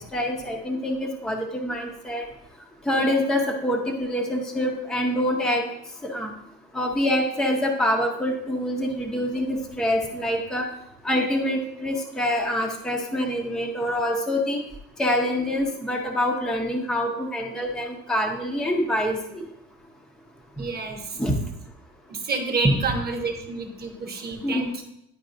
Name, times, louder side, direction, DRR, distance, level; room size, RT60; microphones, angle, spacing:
voice 1, 0.0-2.2 2.9-5.6 6.0-6.3 6.7-10.7 11.0-14.6 15.0-19.4 21.2-21.3 22.6-22.8 24.4-24.7, equal, ahead, 1 dB, 0.6 m, -25 dB
voice 2, 20.6-21.2 22.1-24.8, right 3 dB, 30° right, 3 dB, 1.0 m, -29 dB
10.0 x 4.6 x 2.5 m, 0.79 s
cardioid pair, 145°, 34 cm